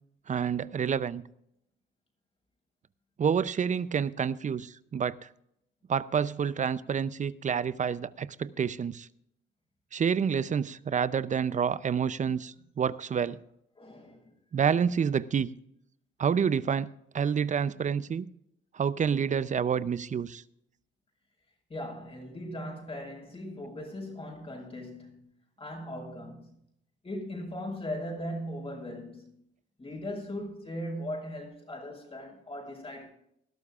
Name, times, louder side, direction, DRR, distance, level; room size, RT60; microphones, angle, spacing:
voice 1, 0.3-1.2 3.2-5.3 5.9-9.1 9.9-13.4 14.5-15.5 16.2-16.9 17.1-18.3 18.7-20.4, right 7 dB, 40° right, 0.5 m, -28 dB
voice 2, 13.8-14.3 21.7-25.2 25.6-26.6 27.0-29.3 29.8-33.1, left 1 dB, 30° left, 5.3 m, -39 dB
19.5 x 12.0 x 2.4 m
cardioid pair, 90°, 20 cm